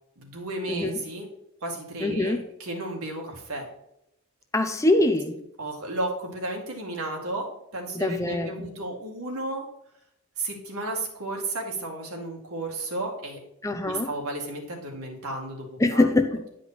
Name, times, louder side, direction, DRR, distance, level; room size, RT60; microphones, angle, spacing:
voice 1, 0.2-1.3 1.6-3.7 5.6-7.4 7.7-9.7 10.4-13.4 13.8-16.1, right 2 dB, 75° right, 1 dB, 2.1 m, -33 dB
voice 2, 2.0-2.4 4.5-5.4 7.9-8.7 13.6-14.1 15.8-16.4, left 2 dB, 15° left, 6 dB, 0.6 m, -23 dB
9.8 x 5.0 x 4.2 m, 0.81 s
head